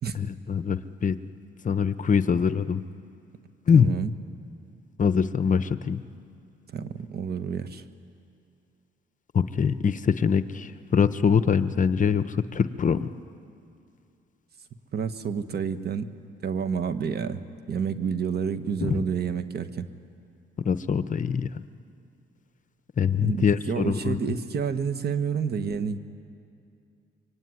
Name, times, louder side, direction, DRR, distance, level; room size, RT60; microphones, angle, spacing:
voice 1, 0.1-1.2 1.6-2.8 3.7-3.9 5.0-6.0 9.3-13.1 18.8-19.0 20.6-21.6 23.0-24.4, left 6 dB, 40° left, 12 dB, 0.8 m, -24 dB
voice 2, 3.7-4.1 6.7-7.8 14.9-16.1 16.4-19.9 23.2-26.0, right 6 dB, 55° right, 10 dB, 1.4 m, -29 dB
24.5 x 23.5 x 9.7 m, 2.5 s
cardioid pair, 90°, 20 cm